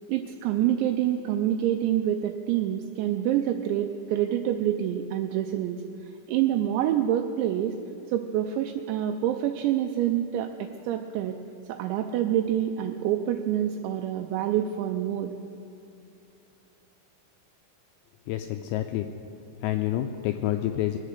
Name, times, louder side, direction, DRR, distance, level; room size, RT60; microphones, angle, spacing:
voice 1, 0.0-7.7 8.1-11.4 11.7-15.3, right 11 dB, 85° right, 4 dB, 2.6 m, -27 dB
voice 2, 18.3-19.1 19.6-21.0, left 13 dB, 85° left, 6 dB, 2.6 m, -28 dB
22.0 x 8.5 x 6.6 m, 2.5 s
omnidirectional pair, 5.8 m